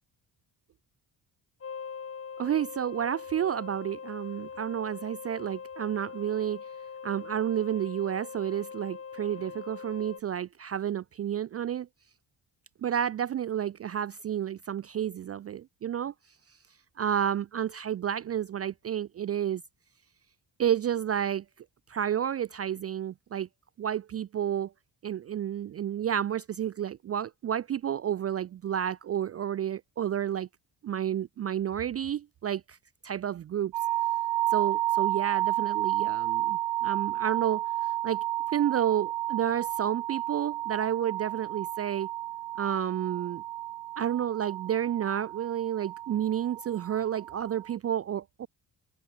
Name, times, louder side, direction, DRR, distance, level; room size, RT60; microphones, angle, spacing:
sound 1, 1.6-10.2, left 6 dB, 35° left, 2.6 m, -42 dB
voice 1, 2.4-6.6 7.0-11.9 12.8-16.1 17.0-19.6 20.6-21.4 21.9-23.5 23.8-24.7 25.0-30.5 30.8-32.8 33.0-33.7 34.5-37.7 38.0-38.2 38.5-42.1 42.6-43.4 44.0-48.5, right 10 dB, 40° right, 0.4 m, -30 dB
sound 2, 33.7-47.8, right 15 dB, 90° right, 1.3 m, -31 dB
open air
cardioid pair, 145°, 41 cm